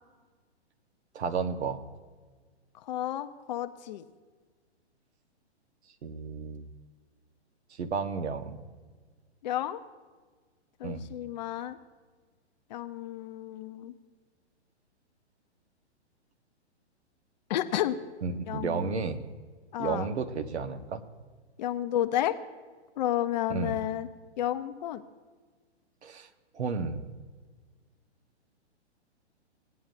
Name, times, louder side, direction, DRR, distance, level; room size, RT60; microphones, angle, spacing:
voice 1, 1.1-1.8 6.0-6.7 7.7-8.6 10.8-11.0 18.2-19.3 19.8-21.0 23.5-23.8 26.0-26.3 26.5-27.1, right 5 dB, 70° right, 8 dB, 1.1 m, -32 dB
voice 2, 2.8-4.0 9.4-9.8 10.8-11.8 12.7-13.9 17.5-18.0 18.5-19.1 19.7-20.1 21.6-22.4 23.0-24.1 24.4-25.0, left 12 dB, 40° left, 10 dB, 0.6 m, -31 dB
18.0 x 9.4 x 2.5 m, 1.5 s
hypercardioid pair, 130°, 34 cm